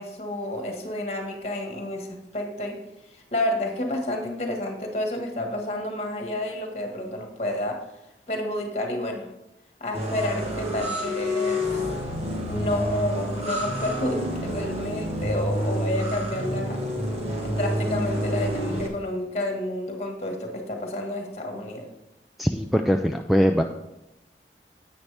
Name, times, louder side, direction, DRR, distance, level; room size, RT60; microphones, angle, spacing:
voice 1, 0.0-2.1 2.3-2.8 3.1-7.8 8.3-9.3 9.8-11.9 12.5-16.8 17.4-21.9, left 1 dB, 35° left, 2 dB, 1.6 m, -30 dB
sound 1, 9.9-18.9, equal, 35° right, 1.5 m, -28 dB
voice 2, 22.4-23.6, equal, ahead, 4 dB, 0.3 m, -21 dB
10.5 x 8.5 x 3.4 m, 0.89 s
head